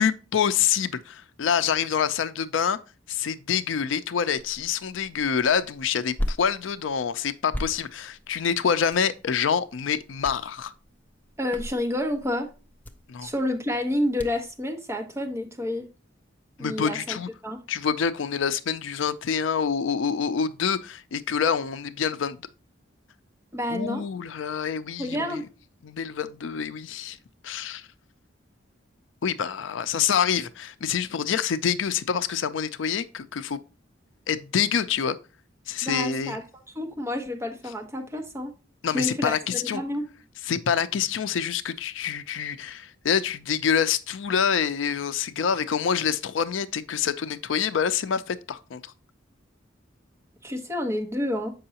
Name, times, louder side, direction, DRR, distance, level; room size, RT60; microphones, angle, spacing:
voice 1, 0.0-2.8 3.1-10.7 13.1-13.3 16.6-17.3 17.7-22.4 23.7-25.4 25.8-27.2 27.4-27.9 29.2-33.6 34.3-35.2 35.7-36.4 38.8-39.8 40.4-48.9, left 7 dB, 70° left, 0.4 m, -26 dB
sound 1, 4.4-14.6, equal, 10° left, 0.5 m, -39 dB
voice 2, 11.4-12.5 13.2-15.9 16.6-17.2 17.4-17.6 23.5-24.0 25.0-25.5 35.8-36.4 36.7-38.5 38.9-39.3 39.6-40.0 50.4-51.5, left 1 dB, 15° right, 1.2 m, -29 dB
7.6 x 5.4 x 2.8 m
head